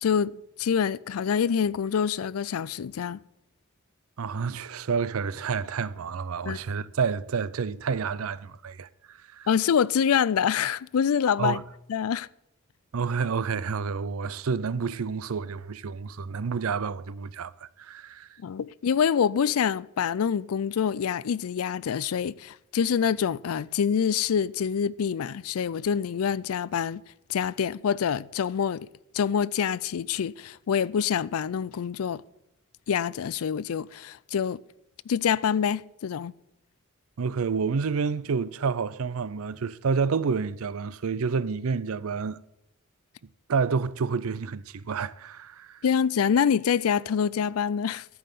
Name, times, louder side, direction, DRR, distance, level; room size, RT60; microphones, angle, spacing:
voice 1, 0.0-3.2 6.5-6.6 9.5-11.6 11.9-12.3 18.4-27.0 27.3-28.9 29.1-32.2 32.9-34.6 35.1-36.3 45.8-48.0, left 7 dB, 85° left, 0.4 m, -26 dB
voice 2, 4.2-9.5 11.4-11.6 12.9-18.3 37.2-42.4 43.5-45.8, right 5 dB, 80° right, 0.5 m, -29 dB
12.5 x 5.6 x 8.3 m
head